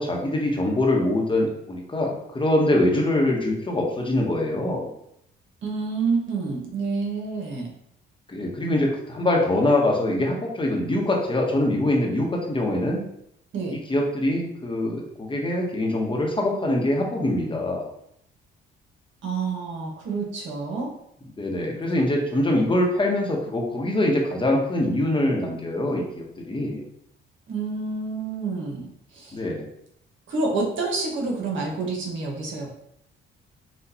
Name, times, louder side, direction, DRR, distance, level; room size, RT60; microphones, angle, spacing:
voice 1, 0.0-4.9 8.3-13.0 13.7-17.8 21.4-26.8 29.3-29.6, left 1 dB, 25° left, 0 dB, 1.1 m, -24 dB
voice 2, 5.6-7.7 13.5-13.8 19.2-20.9 27.5-28.9 29.1-29.4 30.3-32.7, right 4 dB, 75° right, -2 dB, 1.4 m, -28 dB
6.0 x 2.5 x 2.9 m, 0.74 s
cardioid pair, 90°, 20 cm